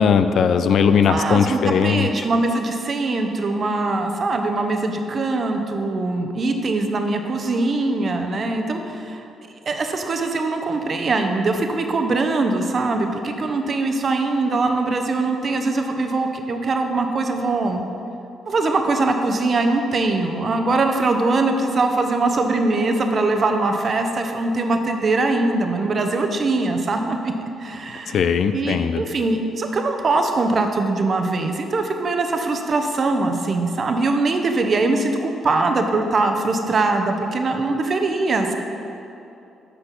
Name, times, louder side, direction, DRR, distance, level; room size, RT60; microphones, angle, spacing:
voice 1, 0.0-2.2 28.1-29.0, left 6 dB, 65° left, 10 dB, 0.4 m, -18 dB
voice 2, 1.0-9.2 9.7-17.8 18.5-27.3 27.6-28.2 28.5-38.5, right 3 dB, 45° right, 5 dB, 0.9 m, -22 dB
9.9 x 4.4 x 7.0 m, 2.8 s
cardioid pair, 90°, 0 cm